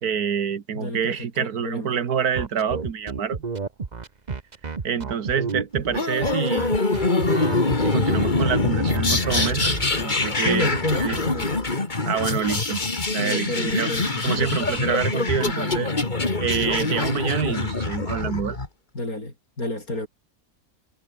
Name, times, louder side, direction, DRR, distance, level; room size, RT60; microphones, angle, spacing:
voice 1, 0.0-3.4 4.8-6.7 7.8-10.7 11.0-11.2 12.1-12.8 13.1-13.9 14.2-15.9 16.4-18.6, right 7 dB, 80° right, 2.0 m, -27 dB
voice 2, 0.7-2.0 10.4-11.6 13.2-14.7 18.9-20.1, left 2 dB, 70° left, 7.8 m, -29 dB
sound 1, 2.3-9.9, right 4 dB, 30° right, 1.2 m, -31 dB
sound 2, 5.9-18.7, left 3 dB, 30° left, 2.5 m, -24 dB
omnidirectional pair, 1.6 m